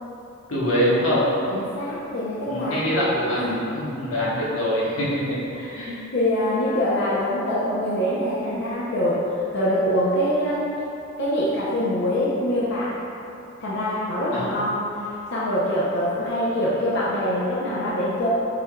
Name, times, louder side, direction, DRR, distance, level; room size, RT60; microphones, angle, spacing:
voice 1, 0.5-1.3 2.5-5.4 5.7-6.0 14.3-14.5, equal, 90° left, -7 dB, 1.2 m, -24 dB
voice 2, 1.5-2.8 3.4-3.6 5.5-10.8 11.2-12.9 13.6-18.3, left 1 dB, 60° left, -8 dB, 0.6 m, -24 dB
6.8 x 3.4 x 2.3 m, 2.8 s
head